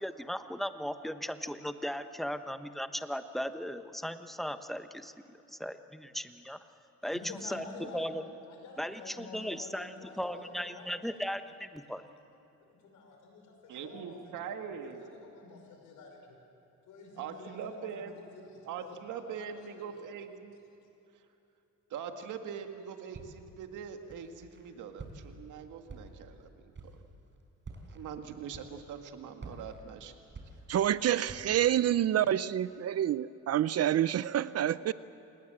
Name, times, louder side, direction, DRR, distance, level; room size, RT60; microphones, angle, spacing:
voice 1, 0.0-5.1 5.6-6.6 7.0-7.2 7.5-7.6 7.9-8.2 8.8-12.0, equal, ahead, 9 dB, 1.1 m, -37 dB
voice 2, 7.0-8.1 8.4-11.4 12.6-14.5 14.8-16.4 16.9-20.1 20.8-20.9, left 3 dB, 80° left, 2 dB, 5.7 m, -50 dB
voice 3, 13.7-15.0 17.2-18.2 18.6-20.6 21.9-27.0 27.9-30.1, right 7 dB, 80° right, 6 dB, 2.0 m, -42 dB
Walk footsteps, 23.1-23.6 24.1-24.6 25.0-25.5 25.9-26.4 26.7-27.1 27.6-28.0 28.5-29.0 29.4-30.9 31.3-31.7, right 3 dB, 40° right, 4.6 m, -48 dB
voice 4, 30.7-34.9, right 11 dB, 55° right, 17 dB, 0.6 m, -28 dB
27.5 x 19.5 x 7.7 m, 2.9 s
cardioid pair, 90°, 30 cm